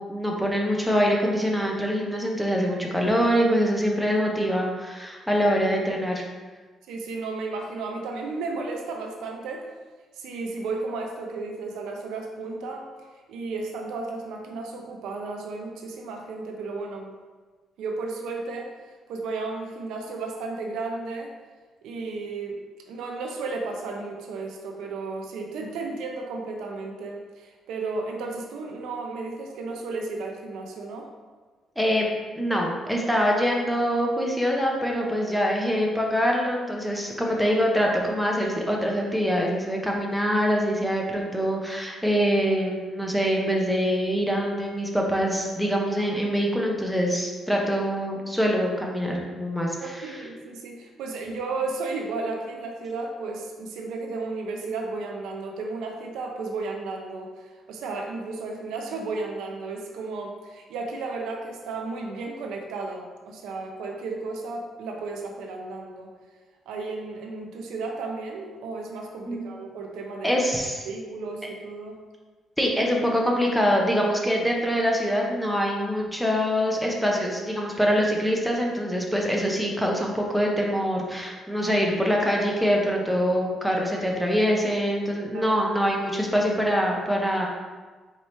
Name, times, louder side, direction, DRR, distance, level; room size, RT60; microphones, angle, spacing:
voice 1, 0.0-6.2 31.8-32.1 32.4-50.3 69.3-69.5 70.2-70.9 72.6-87.5, equal, ahead, -1 dB, 0.8 m, -24 dB
voice 2, 6.9-9.7 10.2-12.9 13.3-17.1 17.8-18.7 19.1-21.3 21.8-31.1 49.8-66.1 66.7-70.3 70.9-72.0 85.3-85.5, right 3 dB, 90° right, 2 dB, 0.5 m, -33 dB
4.7 x 2.9 x 3.2 m, 1.3 s
cardioid pair, 90°, 0 cm